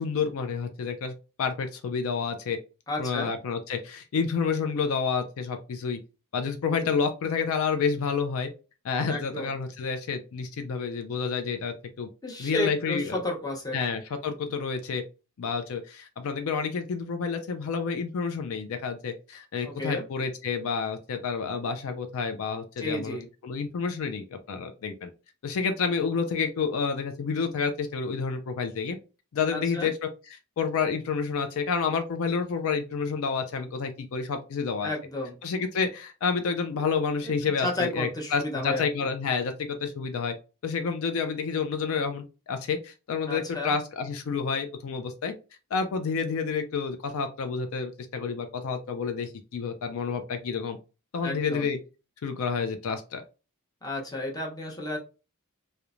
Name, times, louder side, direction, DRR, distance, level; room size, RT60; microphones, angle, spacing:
voice 1, 0.0-2.6 3.0-6.0 6.3-8.5 8.8-12.1 12.4-13.2 13.7-15.0 15.4-23.2 23.4-25.1 25.4-29.0 29.3-34.9 35.4-40.3 40.6-45.3 45.7-50.8 51.1-51.8 52.2-53.2, left 5 dB, 65° left, 7 dB, 0.4 m, -29 dB
voice 2, 2.9-3.3 9.1-9.5 12.2-13.8 19.6-20.0 22.8-23.3 29.5-29.9 34.8-35.4 37.2-38.9 43.3-43.8 51.2-51.7 53.8-55.0, left 2 dB, 15° left, -2 dB, 0.7 m, -32 dB
3.0 x 2.1 x 2.4 m, 0.32 s
head